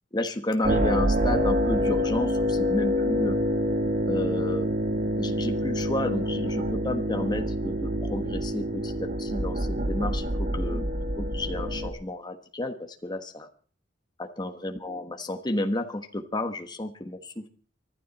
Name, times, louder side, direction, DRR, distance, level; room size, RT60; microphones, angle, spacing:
voice 1, 0.1-3.4 4.0-4.7 5.2-10.9 11.2-13.5 14.2-17.5, left 1 dB, 25° left, 7 dB, 1.3 m, -31 dB
sound 1, 0.6-11.9, equal, 45° right, 1.9 m, -27 dB
24.5 x 12.0 x 4.2 m, 0.42 s
head